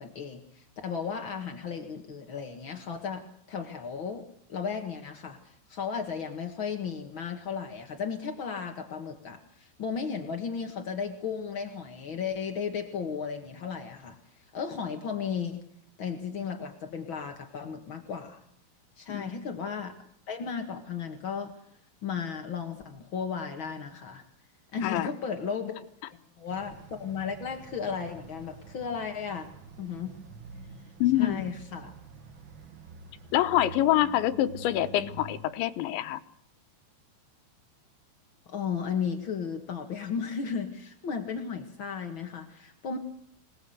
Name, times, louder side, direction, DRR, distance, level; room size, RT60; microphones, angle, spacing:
voice 1, 0.0-15.7 16.0-18.4 19.0-19.9 20.3-21.5 22.0-24.3 24.7-25.8 26.4-29.5 29.8-30.2 31.2-31.9 38.5-43.0, left 6 dB, 65° left, 4 dB, 1.2 m, -35 dB
sound 1, 26.5-35.4, right 4 dB, 75° right, 1.1 m, -47 dB
voice 2, 31.0-31.4 33.3-36.2, left 13 dB, 80° left, 11 dB, 3.4 m, -26 dB
26.0 x 19.5 x 8.0 m, 0.71 s
omnidirectional pair, 5.2 m